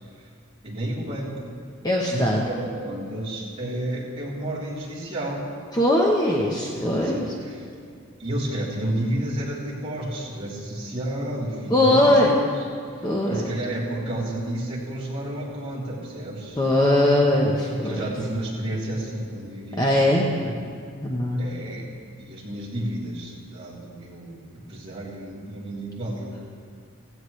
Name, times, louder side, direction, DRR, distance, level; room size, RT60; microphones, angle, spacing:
voice 1, 0.6-1.5 2.1-5.5 6.7-7.7 8.2-16.6 17.7-20.6 21.4-21.9 22.2-26.5, right 1 dB, 25° right, -8 dB, 3.5 m, -31 dB
voice 2, 1.8-2.4 5.7-7.3 11.7-12.3 13.0-13.5 16.6-18.0 19.8-20.3 21.0-21.4, left 1 dB, 15° left, -2 dB, 0.9 m, -20 dB
16.5 x 16.0 x 3.2 m, 2.2 s
head